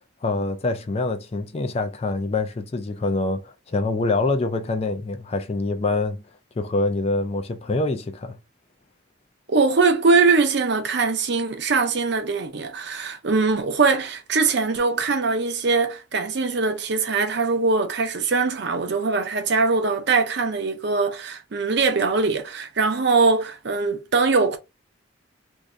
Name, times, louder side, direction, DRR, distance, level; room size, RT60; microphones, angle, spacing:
voice 1, 0.2-6.2 6.6-8.4, left 2 dB, 30° left, 0.4 m, -25 dB
voice 2, 9.5-24.6, right 4 dB, 55° right, 0.6 m, -22 dB
2.6 x 2.5 x 3.3 m
head